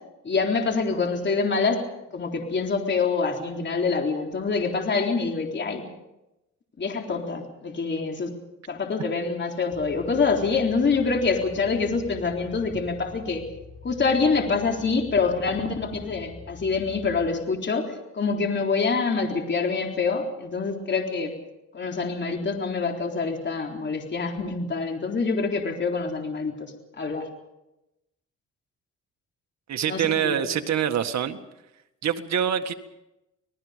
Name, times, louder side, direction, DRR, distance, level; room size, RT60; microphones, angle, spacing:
voice 1, 0.2-1.8 2.1-5.8 6.8-8.3 8.7-13.4 13.8-17.8 18.1-21.3 21.7-26.7 27.0-27.3 29.9-30.4, left 4 dB, 35° left, 2 dB, 3.9 m, -26 dB
sound 1, 9.7-17.3, left 4 dB, ahead, 5.8 m, -45 dB
voice 2, 29.7-31.4 32.0-32.7, right 9 dB, 60° right, 7 dB, 1.8 m, -25 dB
27.5 x 19.5 x 5.2 m, 0.92 s
cardioid pair, 90°, 30 cm